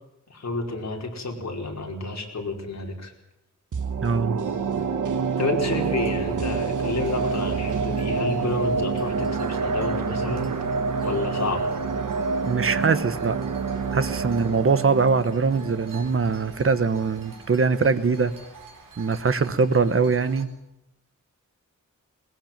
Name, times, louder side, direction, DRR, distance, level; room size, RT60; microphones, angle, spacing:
voice 1, 0.3-3.1 5.4-10.5 11.0-11.6, left 3 dB, 55° left, 1 dB, 5.0 m, -30 dB
sound 1, 3.7-16.8 17.1-17.2, right 5 dB, 70° right, 1.5 m, -27 dB
voice 2, 4.0-4.4 12.4-13.4 13.9-18.3 19.0-20.5, right 4 dB, 45° right, 12 dB, 1.3 m, -22 dB
sound 2, 5.7-20.5, right 5 dB, 85° right, 3.9 m, -47 dB
21.5 x 20.5 x 7.5 m, 0.88 s
wide cardioid pair, 150°, 32 cm